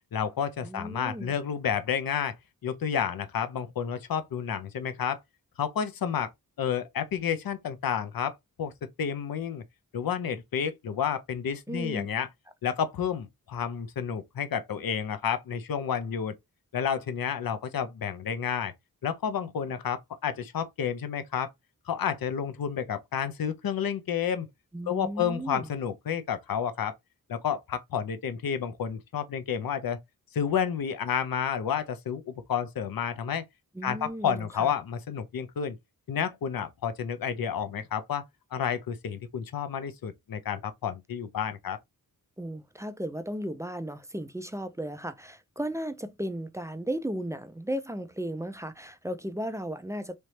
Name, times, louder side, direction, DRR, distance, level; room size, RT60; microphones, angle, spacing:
voice 1, 0.1-2.4 2.6-5.2 5.6-6.3 6.6-9.6 9.9-12.3 12.6-16.3 16.7-18.7 19.0-21.5 21.9-24.5 24.9-27.0 27.3-30.0 30.3-33.5 33.8-35.8 36.1-38.2 38.5-41.8, left 8 dB, 70° left, 0.7 m, -30 dB
voice 2, 0.6-1.4 11.7-12.1 24.7-25.7 33.7-34.7 42.4-50.2, right 1 dB, 10° right, 0.4 m, -35 dB
3.3 x 3.1 x 2.8 m
wide cardioid pair, 85°, 36 cm